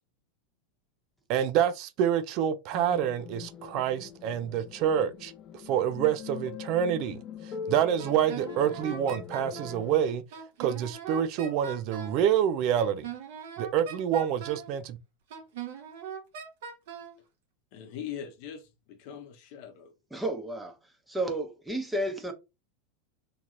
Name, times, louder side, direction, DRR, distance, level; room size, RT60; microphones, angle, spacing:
voice 1, 1.3-5.3 5.7-10.2 10.6-13.1 13.6-15.0, right 9 dB, 50° right, 0.4 m, -27 dB
sound 1, 2.7-10.0, left 7 dB, 35° left, 0.4 m, -42 dB
Wind instrument woodwind instrument, 8.0-9.9 10.3-12.2 12.8-14.7 15.3-17.2, right 7 dB, 65° right, 0.9 m, -40 dB
voice 2, 17.7-19.9, left 9 dB, 60° left, 0.8 m, -41 dB
voice 3, 20.1-20.8 21.1-22.3, right 1 dB, 5° right, 0.9 m, -31 dB
2.9 x 2.8 x 2.5 m
hypercardioid pair, 95°, 0 cm